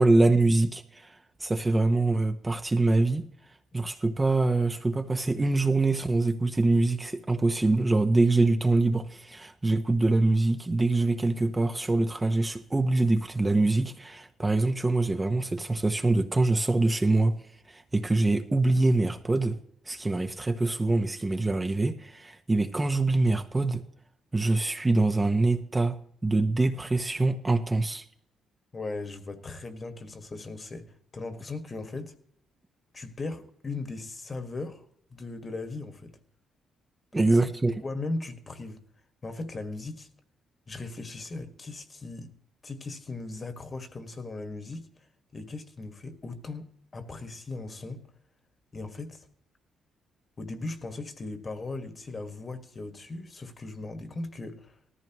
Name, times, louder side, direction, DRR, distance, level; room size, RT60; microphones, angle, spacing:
voice 1, 0.0-3.3 3.7-17.4 17.7-19.6 19.9-23.8 24.3-26.0 26.2-28.0 37.1-37.8, right 2 dB, 20° right, 0.9 m, -24 dB
voice 2, 28.7-30.9 31.1-32.1 32.9-34.8 35.1-36.1 37.1-37.3 37.8-38.8 39.2-40.1 40.7-42.3 42.6-44.8 45.3-48.0 48.7-49.2 50.4-54.7, left 3 dB, 35° left, 1.7 m, -38 dB
18.5 x 14.0 x 3.0 m
cardioid pair, 90°, 0 cm